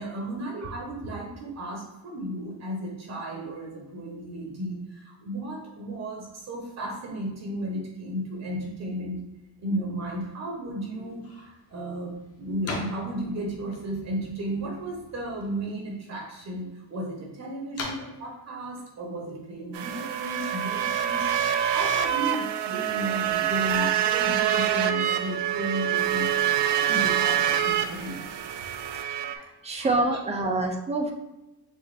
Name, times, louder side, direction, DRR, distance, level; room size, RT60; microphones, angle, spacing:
voice 1, 0.0-9.2 9.6-26.4 26.8-28.4 29.8-29.9 30.4-30.5, right 1 dB, 40° right, -1 dB, 0.9 m, -34 dB
sound 1, 11.0-20.2, left 2 dB, 35° left, 0.8 m, -43 dB
sound 2, 19.7-29.4, right 10 dB, 75° right, 0.5 m, -26 dB
voice 2, 29.1-31.1, right 2 dB, 20° right, 2 dB, 0.3 m, -27 dB
6.4 x 2.4 x 3.3 m, 1.0 s
cardioid pair, 175°, 41 cm